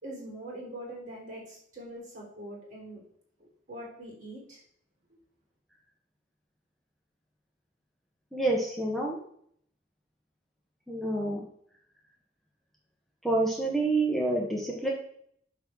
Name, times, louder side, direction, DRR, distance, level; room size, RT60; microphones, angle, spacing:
voice 1, 0.0-3.0 3.4-4.6, right 1 dB, 45° right, -2 dB, 3.6 m, -43 dB
voice 2, 8.3-9.2 10.9-11.4 13.2-14.9, right 2 dB, ahead, -3 dB, 1.0 m, -28 dB
8.4 x 3.7 x 6.1 m, 0.65 s
head